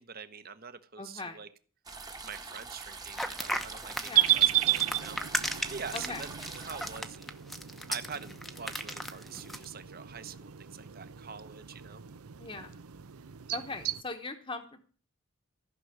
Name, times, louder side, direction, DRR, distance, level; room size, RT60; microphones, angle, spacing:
voice 1, 0.0-1.5 2.2-7.3 7.9-12.0, right 6 dB, 45° right, 11 dB, 1.1 m, -45 dB
voice 2, 1.0-1.4 4.0-4.3 5.9-6.2 12.4-12.8 13.5-14.8, left 3 dB, 25° left, 3 dB, 1.0 m, -40 dB
sound 1, 1.9-7.0, right 4 dB, 15° right, 1.2 m, -44 dB
sound 2, 3.1-9.6, equal, ahead, 0.8 m, -36 dB
sound 3, 4.1-14.0, right 14 dB, 90° right, 0.7 m, -33 dB
15.0 x 6.2 x 9.2 m, 0.41 s
head